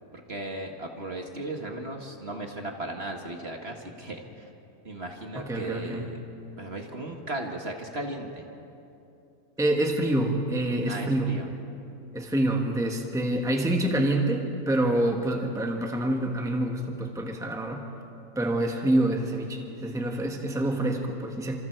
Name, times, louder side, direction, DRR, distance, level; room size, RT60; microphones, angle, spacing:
voice 1, 0.3-4.2 4.8-6.2 6.6-8.5 10.9-11.5, right 1 dB, 40° right, 2 dB, 2.0 m, -36 dB
voice 2, 5.3-6.1 9.6-11.4 12.1-17.8 18.3-21.6, right 1 dB, ahead, 2 dB, 1.6 m, -27 dB
29.5 x 26.5 x 4.7 m, 2.8 s
omnidirectional pair, 1.6 m